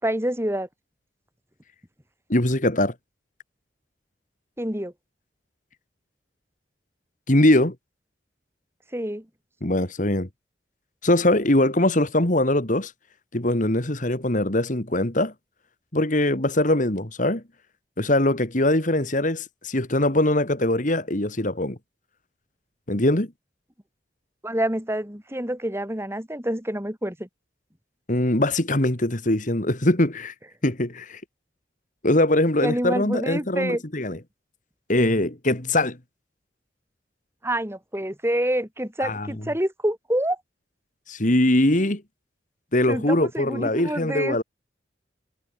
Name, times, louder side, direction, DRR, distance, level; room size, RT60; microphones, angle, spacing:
voice 1, 0.0-0.7 4.6-4.9 8.9-9.3 24.4-27.3 32.6-33.8 37.4-40.4 42.9-44.4, right 1 dB, 15° right, 5.4 m, -27 dB
voice 2, 2.3-2.9 7.3-7.7 9.6-10.3 11.0-12.9 13.3-15.3 15.9-17.4 18.0-21.8 22.9-23.3 28.1-30.3 30.6-31.2 32.0-34.2 34.9-36.0 39.0-39.3 41.1-42.0 42.7-44.4, left 1 dB, 45° left, 2.7 m, -22 dB
head